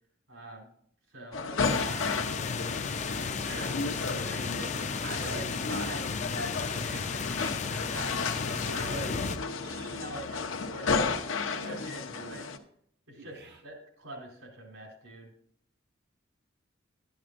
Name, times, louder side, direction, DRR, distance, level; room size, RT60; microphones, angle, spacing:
voice 1, 0.3-0.7 1.1-2.7 3.1-9.2 10.0-11.1 11.5-12.5 13.1-15.3, right 1 dB, 85° right, 4.1 m, -44 dB
sound 1, 1.3-12.6, left 4 dB, 80° left, 0.8 m, -33 dB
sound 2, 1.6-9.4, left 5 dB, 35° left, 0.4 m, -34 dB
voice 2, 9.6-10.4 10.8-11.9 12.2-12.4 13.2-13.6, right 3 dB, 55° right, 0.6 m, -49 dB
12.5 x 10.5 x 2.5 m
head